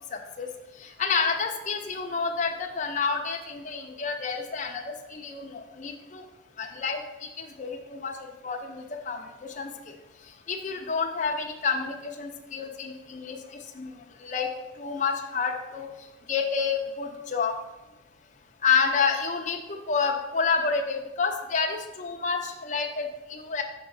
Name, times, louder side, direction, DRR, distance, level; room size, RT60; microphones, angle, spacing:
voice 1, 0.1-0.5 0.8-6.2 6.6-7.0 7.4-8.1 8.4-9.9 10.5-13.4 13.7-13.9 14.2-14.5 14.8-15.9 16.3-17.5 18.6-23.6, left 5 dB, 40° left, 2 dB, 0.6 m, -29 dB
6.1 x 4.3 x 5.5 m, 1.1 s
head